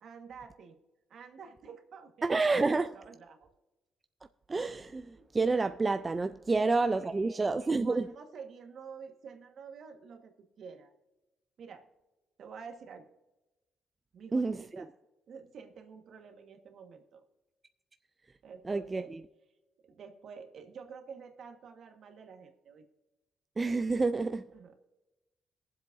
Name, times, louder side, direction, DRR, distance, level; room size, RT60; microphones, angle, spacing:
voice 1, 0.0-0.8 1.1-2.3 2.9-3.5 5.2-5.3 6.5-10.9 11.6-11.8 12.4-13.0 14.1-14.9 15.3-17.2 18.4-19.1 19.8-22.8 24.5-24.7, right 6 dB, 65° right, 1.4 m, -49 dB
voice 2, 2.2-3.0 4.5-8.1 14.3-14.9 18.6-19.2 23.6-24.5, right 3 dB, 25° right, 0.4 m, -29 dB
21.0 x 7.7 x 2.6 m
cardioid pair, 90°, 0 cm